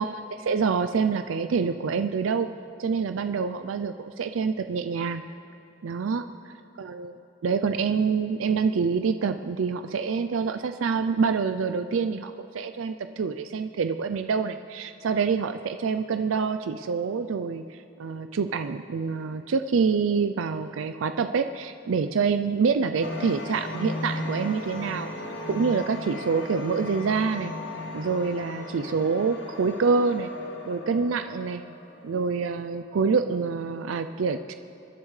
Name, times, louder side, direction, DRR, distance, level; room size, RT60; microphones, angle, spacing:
voice 1, 0.0-2.5 2.8-5.2 5.8-6.2 6.8-25.1 25.5-27.5 27.9-30.3 30.7-31.6 32.0-34.5, right 5 dB, 85° right, 9 dB, 0.4 m, -26 dB
sound 1, 23.0-32.7, left 2 dB, 70° left, 1.9 m, -37 dB
26.5 x 11.0 x 3.3 m, 2.8 s
head